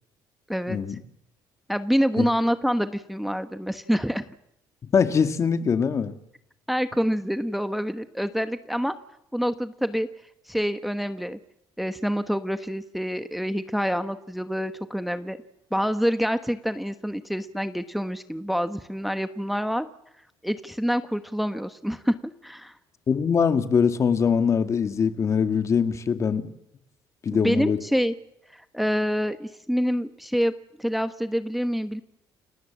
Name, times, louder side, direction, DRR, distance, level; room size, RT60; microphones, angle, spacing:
voice 1, 0.5-1.0 1.7-4.3 6.7-8.9 9.3-10.1 10.5-11.4 11.8-15.4 15.7-19.9 20.4-22.7 27.3-28.1 28.5-30.5 30.8-32.0, equal, ahead, 1.2 m, -26 dB
voice 2, 4.9-6.1 23.1-26.5 27.2-27.8, left 6 dB, 40° left, 2.1 m, -22 dB
30.0 x 19.0 x 7.6 m
cardioid pair, 120°, 8 cm